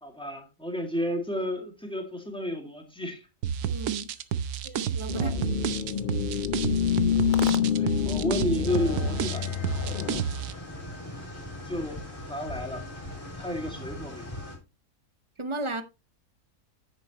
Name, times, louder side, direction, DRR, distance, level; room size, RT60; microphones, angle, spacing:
voice 1, 0.0-3.2 5.1-5.3 7.2-9.5 11.7-12.0 12.3-12.9 13.4-14.3, left 1 dB, 5° left, 2.1 m, -32 dB
sound 1, 3.4-10.5, right 8 dB, 75° right, 1.3 m, -30 dB
voice 2, 3.6-4.1 4.6-5.3 9.9-10.0 15.4-15.8, right 2 dB, 25° right, 0.6 m, -34 dB
sound 2, 5.1-10.2, left 9 dB, 55° left, 0.5 m, -27 dB
sound 3, 8.6-14.6, left 1 dB, 20° left, 3.3 m, -40 dB
10.0 x 8.4 x 3.0 m
omnidirectional pair, 1.7 m